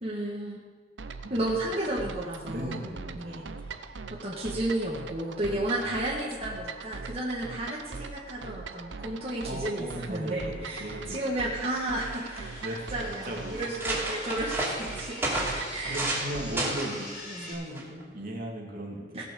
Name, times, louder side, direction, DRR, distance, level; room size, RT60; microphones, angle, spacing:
voice 1, 0.0-0.6 1.3-2.8 3.2-3.9 4.2-15.2 15.5-16.0 17.3-17.5 19.1-19.2, right 1 dB, 35° right, -5 dB, 1.5 m, -33 dB
sound 1, 1.0-16.8, right 4 dB, 80° right, 0.6 m, -41 dB
voice 2, 2.4-3.9 5.4-6.0 9.4-11.2 12.6-13.6 15.2-15.3 15.9-17.1 17.3-19.2, right 1 dB, 50° right, 0 dB, 2.2 m, -38 dB
sound 2, 7.1-17.5, left 1 dB, 50° left, 3.6 m, -47 dB
sound 3, 12.0-12.6 13.2-13.3 13.6-16.3 16.6-17.0 17.7-18.0, right 1 dB, 10° right, 2.8 m, -31 dB
17.0 x 6.0 x 6.8 m, 1.5 s
head